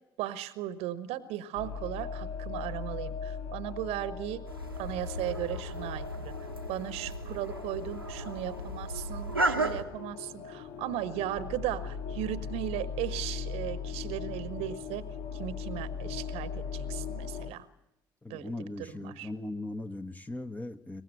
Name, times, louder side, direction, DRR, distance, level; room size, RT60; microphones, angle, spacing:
voice 1, 0.2-4.5 4.8-6.3 6.7-17.7 18.3-19.3, right 13 dB, 60° right, 16 dB, 1.2 m, -37 dB
sound 1, 1.5-17.5, left 6 dB, 60° left, 1.7 m, -39 dB
sound 2, 4.5-9.8, right 2 dB, 90° right, 1.1 m, -35 dB
voice 2, 18.2-21.0, left 2 dB, 15° left, 7 dB, 1.4 m, -39 dB
23.5 x 20.0 x 7.9 m, 0.86 s
figure-of-eight pair, 50°, 12 cm